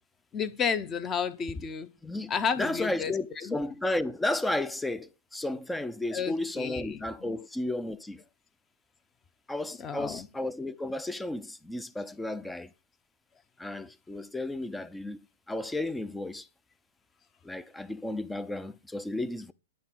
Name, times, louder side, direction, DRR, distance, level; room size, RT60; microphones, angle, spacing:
voice 1, 0.3-1.9 2.3-3.1 3.4-3.5 6.1-7.4 9.8-10.3, left 6 dB, 25° left, 1.0 m, -32 dB
voice 2, 2.0-8.2 9.5-12.7 13.6-15.2 15.5-16.5 17.4-19.5, left 1 dB, 5° left, 0.6 m, -33 dB
11.5 x 3.8 x 7.6 m
hypercardioid pair, 115°, 0 cm